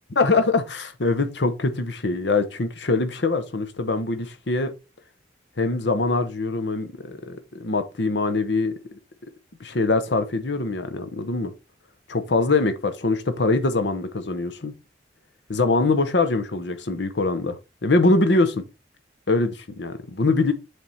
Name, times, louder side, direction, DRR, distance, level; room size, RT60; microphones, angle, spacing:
voice 1, 0.2-4.7 5.6-8.7 9.6-11.5 12.1-14.7 15.5-17.6 17.8-18.6 19.3-20.5, left 3 dB, 70° left, 0.9 m, -23 dB
7.5 x 3.5 x 4.2 m
head